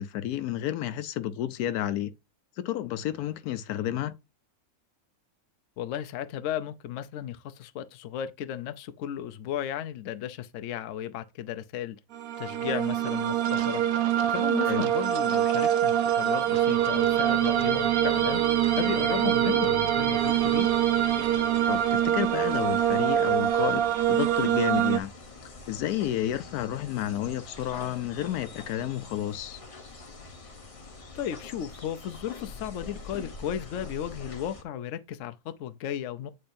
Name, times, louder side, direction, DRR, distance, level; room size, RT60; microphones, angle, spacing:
voice 1, 0.0-2.1 2.6-4.2 14.6-14.9 21.7-25.1 25.7-29.6, left 12 dB, 90° left, 1.1 m, -31 dB
voice 2, 5.8-12.0 12.4-13.8 14.3-18.4 18.7-20.7 31.1-36.3, left 10 dB, 65° left, 0.9 m, -35 dB
sound 1, 12.1-25.0, right 11 dB, 70° right, 1.1 m, -25 dB
sound 2, 15.9-22.3, right 8 dB, 50° right, 0.5 m, -33 dB
sound 3, 20.2-34.6, left 3 dB, 30° left, 0.7 m, -45 dB
8.6 x 4.3 x 2.6 m
omnidirectional pair, 1.6 m